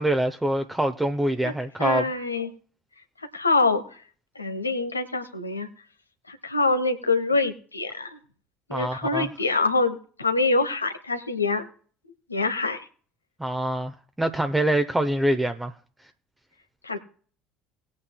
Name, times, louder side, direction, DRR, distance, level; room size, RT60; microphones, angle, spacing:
voice 1, 0.0-2.1 8.7-9.3 13.4-15.7, right 1 dB, 10° right, 0.8 m, -25 dB
voice 2, 1.8-2.5 3.3-3.8 4.4-5.7 6.3-8.2 8.7-11.7 12.3-12.8 16.8-17.0, left 3 dB, 85° left, 1.0 m, -25 dB
19.5 x 8.7 x 2.3 m
figure-of-eight pair, 60°, 0 cm